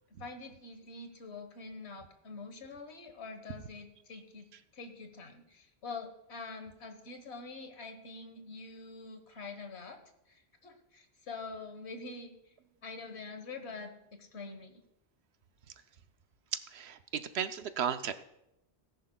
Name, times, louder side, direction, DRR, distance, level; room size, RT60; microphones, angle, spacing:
voice 1, 0.2-4.5 4.7-10.0 10.3-12.3 12.8-14.8, left 4 dB, 75° left, 6 dB, 1.6 m, -45 dB
voice 2, 16.5-18.1, right 8 dB, 70° right, 10 dB, 0.9 m, -35 dB
18.0 x 10.5 x 2.2 m, 0.83 s
omnidirectional pair, 1.1 m